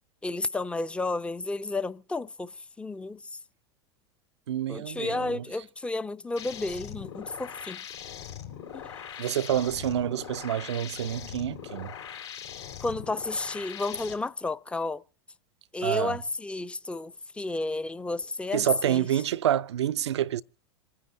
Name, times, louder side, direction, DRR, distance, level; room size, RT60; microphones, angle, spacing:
voice 1, 0.2-3.4 4.7-7.8 8.7-9.1 12.8-15.0 15.7-19.1, left 2 dB, 10° left, 0.5 m, -32 dB
voice 2, 4.5-5.4 9.2-11.9 15.8-16.2 18.5-20.4, right 11 dB, 75° right, 0.5 m, -28 dB
sound 1, 6.4-14.1, left 9 dB, 75° left, 3.9 m, -41 dB
27.5 x 9.7 x 2.6 m
hypercardioid pair, 90°, 14 cm